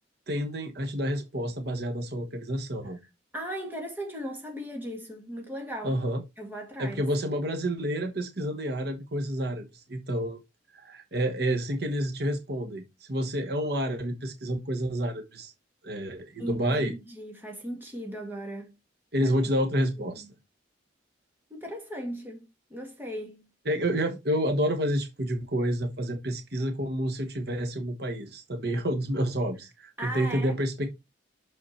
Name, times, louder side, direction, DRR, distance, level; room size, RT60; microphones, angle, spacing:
voice 1, 0.3-3.0 5.8-6.2 6.8-10.4 10.7-12.8 13.1-15.5 15.8-16.9 19.1-20.2 23.6-30.9, equal, 55° right, 1.2 m, -29 dB
voice 2, 3.3-6.0 6.4-7.0 16.4-18.8 19.2-19.3 20.0-20.3 21.5-23.5 30.0-30.5, equal, 10° right, 2.0 m, -37 dB
6.3 x 5.4 x 4.2 m
head